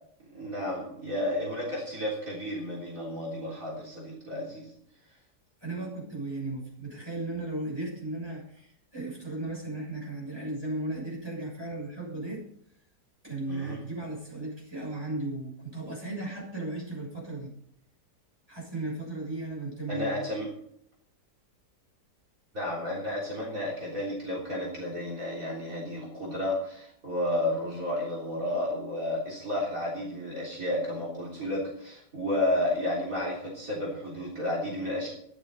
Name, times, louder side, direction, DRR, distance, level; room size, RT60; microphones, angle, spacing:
voice 1, 0.3-4.7 13.5-13.8 19.9-20.5 22.5-35.1, left 1 dB, 50° right, -4 dB, 4.1 m, -32 dB
voice 2, 5.6-12.4 13.2-17.5 18.5-20.3, right 2 dB, 15° right, -3 dB, 6.7 m, -36 dB
13.0 x 11.5 x 5.4 m, 0.69 s
omnidirectional pair, 1.8 m